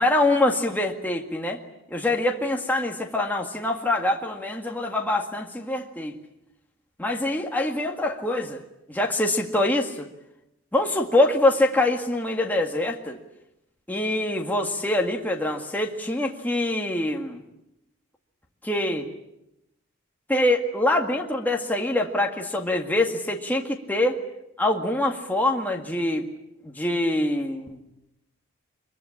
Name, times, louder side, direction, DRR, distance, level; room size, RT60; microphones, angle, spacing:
voice 1, 0.0-1.6 1.9-6.1 7.0-8.6 8.9-10.1 10.7-13.2 13.9-17.4 18.6-19.1 20.3-24.2 24.6-26.3 26.6-27.8, left 1 dB, 10° left, 1 dB, 1.9 m, -24 dB
24.5 x 23.0 x 8.6 m, 0.86 s
head